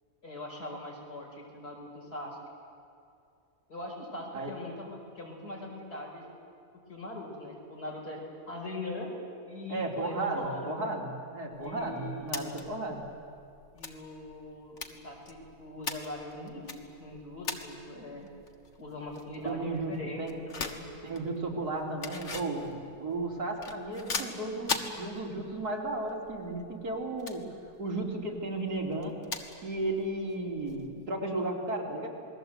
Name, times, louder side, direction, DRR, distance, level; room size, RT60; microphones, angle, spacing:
voice 1, 0.2-2.4 3.7-6.2 6.9-8.2 8.5-9.1 9.5-10.8 11.6-12.5 13.7-18.3 18.8-20.9, left 2 dB, 80° left, -1 dB, 5.6 m, -41 dB
voice 2, 9.7-13.0 19.4-20.3 21.0-27.4 27.8-29.1 29.6-32.1, right 2 dB, 80° right, -1 dB, 3.9 m, -34 dB
sound 1, 11.5-31.1, left 4 dB, 50° left, 1.8 m, -43 dB
27.5 x 20.5 x 8.0 m, 2.5 s
omnidirectional pair, 1.6 m